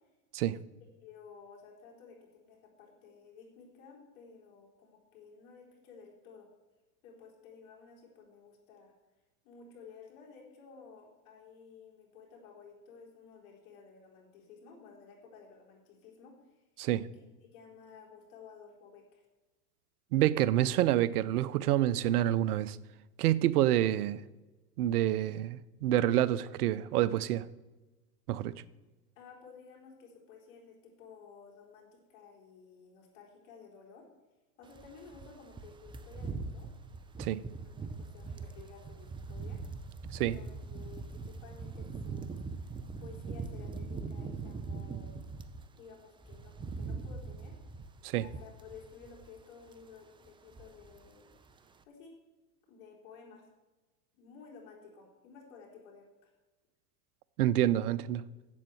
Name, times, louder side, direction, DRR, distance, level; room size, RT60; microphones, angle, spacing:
voice 1, 1.0-6.5 7.0-8.9 9.4-16.6 17.2-19.2 29.2-34.1 34.6-36.7 37.2-39.6 40.1-42.4 43.0-45.2 45.8-47.6 48.2-51.3 51.9-52.1 52.7-53.4 54.1-56.3, left 5 dB, 60° left, 4.0 m, -54 dB
voice 2, 20.1-22.8 23.2-24.2 24.8-27.5 28.3-28.5 37.2-37.4 40.1-40.4 48.0-48.3 57.4-58.2, right 13 dB, 75° right, 0.7 m, -27 dB
sound 1, 34.7-45.6 46.0-49.4 49.7-49.9 50.2-51.1 51.3-51.5, right 4 dB, 10° right, 0.4 m, -42 dB
7.9 x 7.5 x 7.6 m
hypercardioid pair, 100°, 45 cm